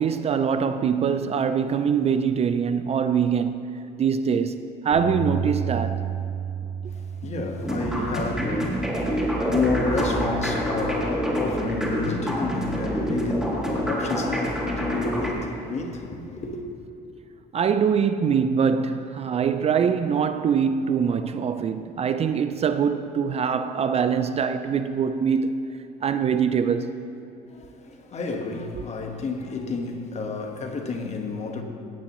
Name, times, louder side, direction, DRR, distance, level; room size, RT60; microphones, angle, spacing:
voice 1, 0.0-3.6 4.0-6.0 9.4-9.5 17.5-25.5 26.0-27.0, right 7 dB, 40° right, 0.4 m, -23 dB
Bass guitar, 4.9-11.2, right 6 dB, 90° right, 1.3 m, -33 dB
voice 2, 6.8-16.6 27.5-31.6, left 3 dB, 40° left, 1.3 m, -30 dB
sound 1, 7.6-15.3, equal, 5° right, 2.1 m, -27 dB
16.5 x 9.5 x 3.0 m
cardioid pair, 110°, 17 cm